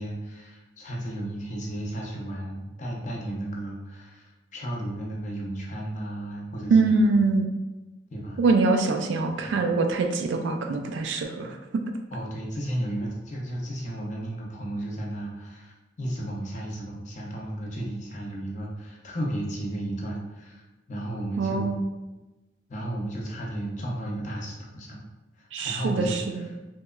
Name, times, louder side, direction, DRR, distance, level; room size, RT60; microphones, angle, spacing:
voice 1, 0.0-7.2 8.1-8.4 9.4-9.6 12.1-21.7 22.7-25.0 25.4-26.4, right 1 dB, 40° left, -2 dB, 0.5 m, -34 dB
voice 2, 6.7-7.5 8.4-11.8 21.4-21.8 25.5-26.5, right 3 dB, 75° right, 5 dB, 0.3 m, -24 dB
2.9 x 2.2 x 2.2 m, 1.1 s
head